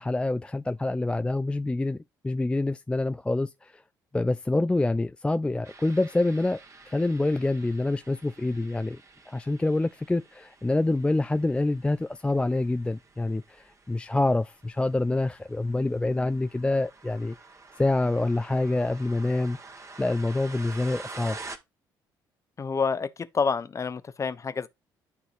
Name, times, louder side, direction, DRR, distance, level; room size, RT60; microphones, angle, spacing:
voice 1, 0.0-3.8 4.1-6.6 6.8-9.0 9.3-17.4 17.8-19.6 20.0-21.4, left 2 dB, 10° left, 0.4 m, -26 dB
sound 1, 5.6-21.6, right 3 dB, 30° right, 1.5 m, -48 dB
voice 2, 22.6-24.7, left 5 dB, 30° left, 0.8 m, -28 dB
12.0 x 4.1 x 2.6 m
figure-of-eight pair, 45°, 11 cm